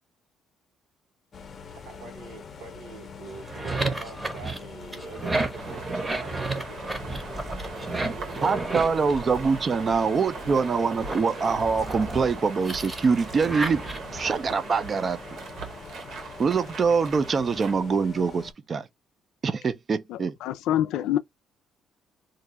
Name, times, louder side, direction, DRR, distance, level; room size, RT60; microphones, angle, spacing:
sound 1, 1.3-18.5, left 6 dB, 35° left, 0.6 m, -44 dB
voice 1, 1.7-6.9 7.9-9.4 10.0-11.4, right 5 dB, 85° right, 1.2 m, -45 dB
sound 2, 3.3-10.0 10.4-14.3, right 2 dB, 15° right, 0.8 m, -33 dB
sound 3, 5.5-17.8, right 4 dB, 65° right, 1.0 m, -40 dB
voice 2, 8.4-13.8 14.1-15.4 16.4-18.9 19.4-20.3, right 5 dB, 30° right, 0.4 m, -24 dB
voice 3, 20.1-21.2, left 12 dB, 85° left, 0.4 m, -26 dB
2.5 x 2.3 x 4.1 m
cardioid pair, 150°, 0 cm